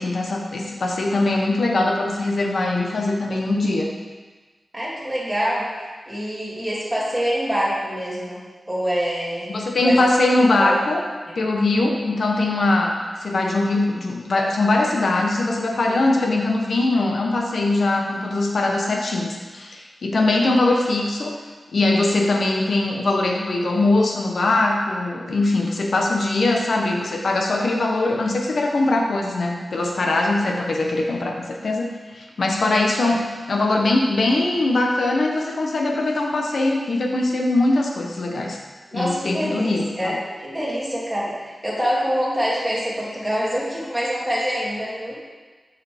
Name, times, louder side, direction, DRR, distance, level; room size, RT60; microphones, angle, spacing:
voice 1, 0.0-3.9 9.5-11.0 11.3-21.4 21.7-38.6 38.9-40.2, left 2 dB, 75° left, 1 dB, 1.0 m, -21 dB
voice 2, 4.7-5.7 6.1-9.5 9.8-10.0 10.4-10.8 11.3-11.4 38.9-45.2, equal, 5° right, -7 dB, 2.0 m, -25 dB
6.9 x 6.6 x 3.5 m, 1.4 s
wide cardioid pair, 85°, 0 cm